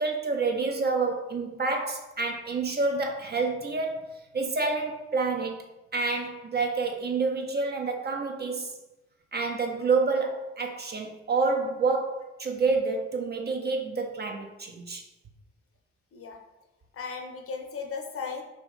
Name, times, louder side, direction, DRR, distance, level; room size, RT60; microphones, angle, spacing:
voice 1, 0.0-5.6 5.9-8.7 9.3-15.0, right 4 dB, 30° right, 3 dB, 0.5 m, -28 dB
voice 2, 16.9-18.4, left 5 dB, 40° left, 2 dB, 0.6 m, -36 dB
2.7 x 2.4 x 3.8 m, 0.98 s
hypercardioid pair, 40°, 35 cm